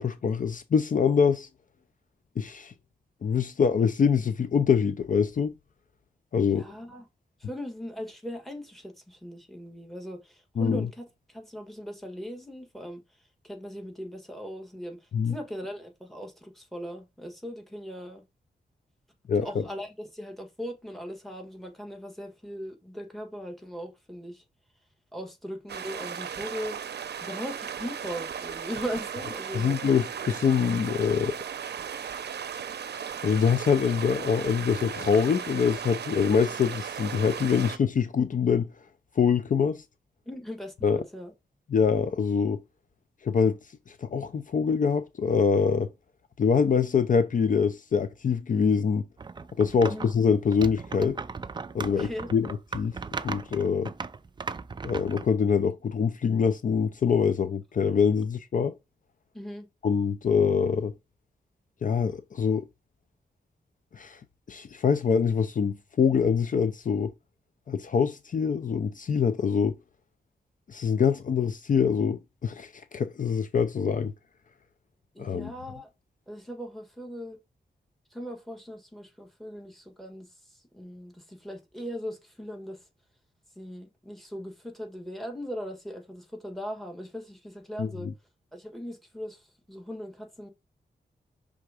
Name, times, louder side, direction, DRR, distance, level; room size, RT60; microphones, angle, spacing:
voice 1, 0.0-1.5 2.4-2.7 3.2-5.5 6.3-6.6 10.6-10.9 15.1-15.3 19.3-19.5 29.5-31.4 33.2-38.7 39.2-39.8 40.8-41.0 41.7-42.6 43.2-43.6 43.9-45.9 46.4-49.0 49.6-51.2 51.7-52.9 53.2-53.9 54.8-58.7 59.8-60.9 61.8-62.7 63.9-64.2 64.5-67.1 67.7-69.8 70.7-74.1 75.2-75.5 87.8-87.9, left 6 dB, 50° left, 0.5 m, -24 dB
voice 2, 6.4-7.1 7.4-13.0 13.4-15.0 15.2-18.2 19.4-24.4 25.1-26.8 27.2-29.8 40.3-41.3 49.8-50.1 51.9-52.3 59.3-59.7 75.1-75.9 76.3-77.4 78.1-80.3 80.7-82.8 83.5-88.1 88.5-89.4 89.7-90.5, equal, ahead, 1.5 m, -39 dB
sound 1, 25.7-37.8, right 8 dB, 75° right, 0.6 m, -36 dB
sound 2, 49.2-50.1 50.5-55.3, right 4 dB, 25° right, 0.4 m, -37 dB
5.8 x 3.5 x 4.9 m
wide cardioid pair, 155°, 18 cm